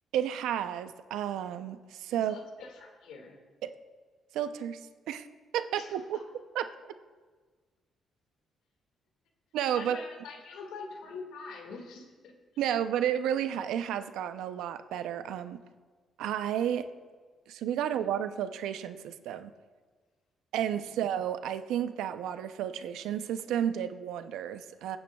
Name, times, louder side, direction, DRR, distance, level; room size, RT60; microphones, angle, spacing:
voice 1, 0.1-2.4 3.6-3.7 4.3-5.3 5.5-6.2 6.5-6.7 9.5-10.0 12.6-15.6 16.2-16.9 17.5-19.5 20.5-25.0, right 10 dB, 90° right, 10 dB, 0.5 m, -32 dB
voice 2, 2.2-3.4 5.7-6.0 9.7-12.3 20.9-21.0, left 4 dB, 85° left, 2 dB, 1.9 m, -45 dB
22.5 x 8.7 x 2.3 m, 1.4 s
cardioid pair, 90°, 0 cm